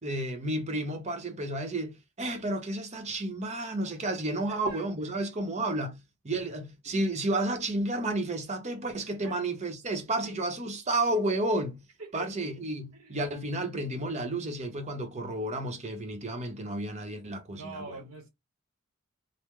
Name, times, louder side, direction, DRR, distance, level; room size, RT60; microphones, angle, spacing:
voice 1, 0.0-6.0 6.2-11.8 12.1-17.8, right 1 dB, 30° right, 0.7 m, -31 dB
voice 2, 4.3-4.9 5.2-5.3 6.4-6.6 9.2-9.4 12.0-12.3 12.9-13.2 17.5-18.3, right 2 dB, 90° right, 0.9 m, -44 dB
3.6 x 2.0 x 3.0 m
head